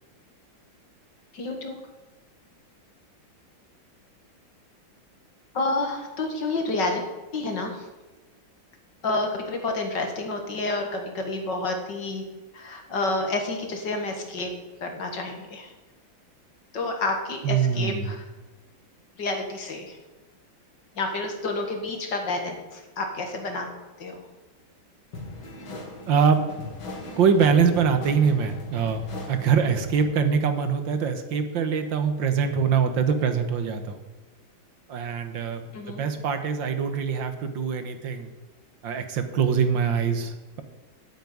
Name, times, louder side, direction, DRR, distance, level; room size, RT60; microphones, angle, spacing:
voice 1, 1.3-1.8 5.5-7.0 7.3-7.8 9.0-12.2 12.5-14.5 14.8-15.7 16.7-18.2 19.2-20.0 21.0-23.7 24.0-24.2 35.7-36.0, left 2 dB, 65° left, 4 dB, 2.5 m, -29 dB
voice 2, 17.4-18.2 26.1-26.4 27.2-34.0 34.9-38.3 38.8-40.6, right 6 dB, 70° right, 8 dB, 1.8 m, -23 dB
sound 1, 25.1-30.2, left 2 dB, 90° left, 3.3 m, -39 dB
9.1 x 8.2 x 9.3 m, 1.2 s
omnidirectional pair, 2.1 m